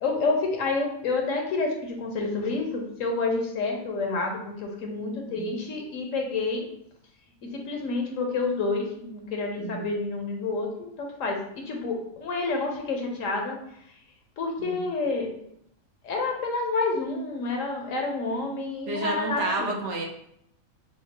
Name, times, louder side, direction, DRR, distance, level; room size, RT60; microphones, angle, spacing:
voice 1, 0.0-6.7 7.4-13.6 14.4-15.3 16.0-19.8, left 3 dB, 70° left, 2 dB, 1.1 m, -29 dB
voice 2, 9.6-9.9 14.6-14.9 18.9-20.1, right 2 dB, 60° right, 0 dB, 1.0 m, -31 dB
6.5 x 2.3 x 2.9 m, 0.74 s
omnidirectional pair, 1.5 m